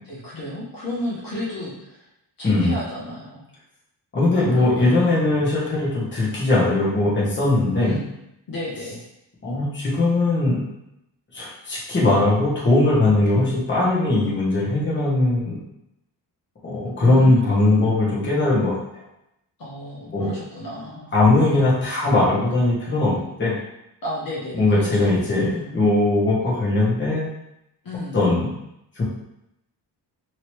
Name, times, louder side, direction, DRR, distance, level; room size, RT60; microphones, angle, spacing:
voice 1, 0.1-2.0 2.4-3.4 4.3-5.0 7.8-8.0 8.5-9.0 13.3-13.5 17.0-17.9 19.6-21.1 21.4-21.7 24.0-25.2 25.4-25.8 27.8-28.3, left 1 dB, 55° left, -6 dB, 0.9 m, -32 dB
voice 2, 2.4-2.7 4.1-8.0 9.4-10.7 11.3-15.6 16.6-18.8 20.1-20.3 21.1-23.5 24.6-27.3 28.1-28.5 29.0-29.1, left 2 dB, 25° left, -7 dB, 1.0 m, -20 dB
3.0 x 2.7 x 3.1 m, 0.83 s
wide cardioid pair, 145°, 42 cm